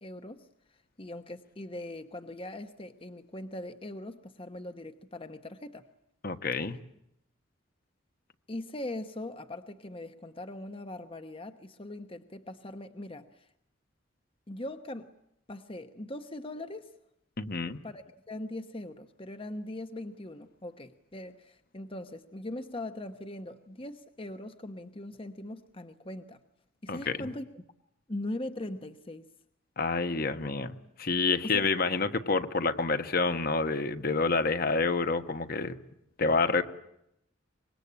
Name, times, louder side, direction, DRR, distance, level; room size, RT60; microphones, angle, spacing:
voice 1, 0.0-0.5 1.0-5.9 8.5-13.5 14.5-15.1 15.5-16.9 17.8-26.4 26.8-27.6 28.1-29.2 31.4-31.7, left 1 dB, 30° left, 8 dB, 1.1 m, -40 dB
voice 2, 6.2-6.8 17.4-17.8 26.9-27.3 29.8-35.8 36.2-36.6, left 4 dB, 50° left, 9 dB, 1.3 m, -28 dB
25.5 x 22.0 x 8.7 m, 0.79 s
head